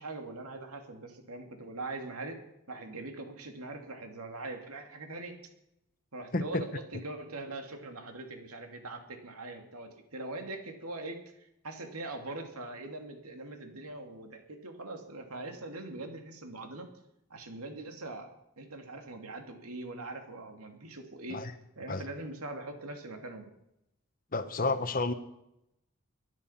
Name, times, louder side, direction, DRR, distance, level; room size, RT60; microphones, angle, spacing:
voice 1, 0.0-2.4 2.7-5.3 6.1-11.2 11.6-16.9 17.3-18.3 18.6-21.4 21.8-23.5, right 2 dB, 85° right, 5 dB, 2.7 m, -42 dB
voice 2, 6.3-6.6 21.3-21.5 21.9-22.0 24.3-25.1, left 3 dB, 40° left, 10 dB, 1.1 m, -30 dB
22.0 x 11.0 x 5.8 m, 0.84 s
head